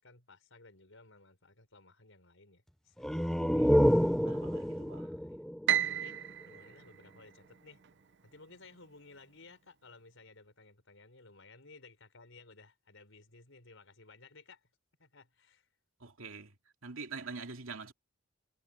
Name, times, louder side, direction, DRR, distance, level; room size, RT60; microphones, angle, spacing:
voice 1, 0.0-3.7 4.7-5.5 5.8-7.8 8.2-14.7 15.0-15.7, left 3 dB, 70° left, 6.7 m, -58 dB
sound 1, 3.0-6.5, equal, ahead, 0.6 m, -29 dB
voice 2, 3.5-5.1 16.0-16.5 16.8-17.9, right 4 dB, 75° right, 2.7 m, -45 dB
Piano, 5.7-7.9, right 10 dB, 60° right, 0.8 m, -34 dB
head